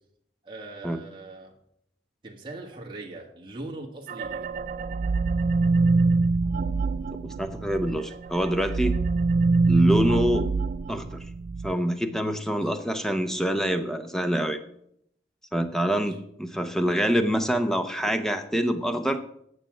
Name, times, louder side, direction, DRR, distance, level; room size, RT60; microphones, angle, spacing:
voice 1, 0.4-1.6 2.2-4.5 12.5-12.8 15.9-16.2, right 2 dB, 25° right, -1 dB, 1.5 m, -41 dB
sound 1, 4.1-8.0 8.3-11.7, right 3 dB, 50° right, 0.3 m, -24 dB
voice 2, 7.1-9.0 9.7-10.5 10.9-11.2 11.6-14.6 15.5-19.2, equal, 5° left, 9 dB, 0.7 m, -26 dB
9.4 x 6.2 x 7.1 m, 0.72 s
head